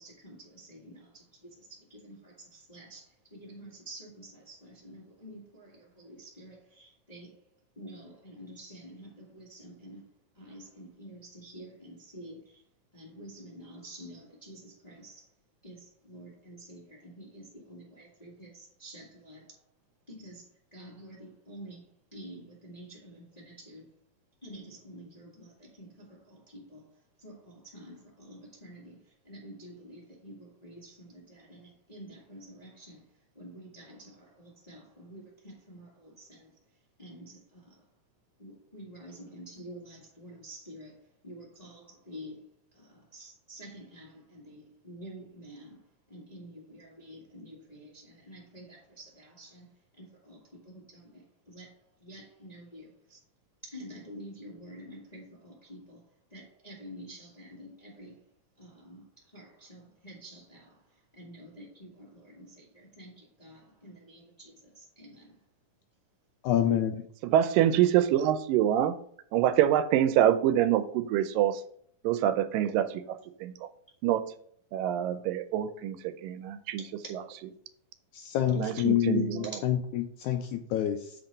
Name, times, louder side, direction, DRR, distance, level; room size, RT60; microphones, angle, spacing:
voice 1, 0.0-7.4 7.7-10.0 10.3-12.6 12.9-15.3 15.6-19.5 20.1-23.9 24.4-26.9 27.2-33.0 33.3-36.5 37.0-37.8 38.4-42.4 42.7-45.8 46.1-49.7 50.0-53.2 53.6-56.0 56.3-58.2 58.6-59.0 59.3-60.9 61.1-65.4, equal, 30° left, -4 dB, 0.7 m, -49 dB
voice 2, 66.4-67.0 78.1-81.1, left 10 dB, 80° left, 7 dB, 1.8 m, -28 dB
voice 3, 67.2-68.9 69.3-71.6 72.0-72.9 73.4-73.5 74.0-74.2 74.7-76.0 76.2-76.8 78.6-79.4, right 11 dB, 85° right, 12 dB, 2.3 m, -25 dB
7.7 x 4.5 x 5.1 m, 0.63 s
omnidirectional pair, 3.9 m